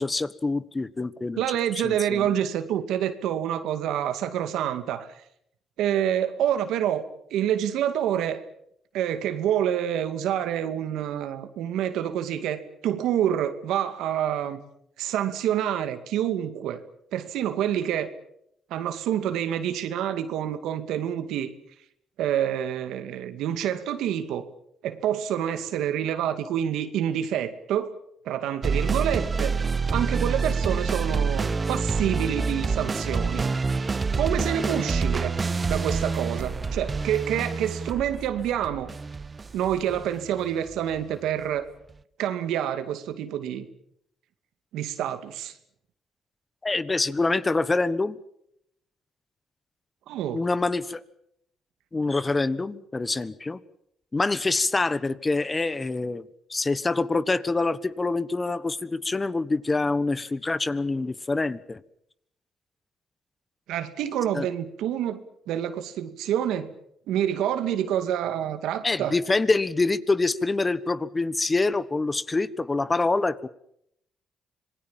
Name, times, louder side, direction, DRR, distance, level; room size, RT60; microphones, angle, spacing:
voice 1, 0.0-1.4 1.8-2.3 46.6-48.2 50.3-51.0 51.9-53.6 54.1-61.8 64.3-64.5 68.8-73.5, left 3 dB, 25° left, 16 dB, 1.3 m, -26 dB
voice 2, 1.4-5.1 5.8-7.0 7.3-8.4 8.9-14.6 15.0-16.8 17.1-18.1 18.7-21.5 22.2-24.5 24.8-27.9 28.3-29.5 29.9-33.5 34.2-35.3 35.7-38.9 39.5-41.7 42.2-43.7 44.7-45.5 50.1-50.4 63.7-66.7 67.1-69.1, right 10 dB, 85° right, 10 dB, 2.2 m, -27 dB
sound 1, 28.6-41.0, right 4 dB, 30° right, 0.9 m, -27 dB
26.5 x 20.5 x 7.4 m, 0.73 s
cardioid pair, 90°, 0 cm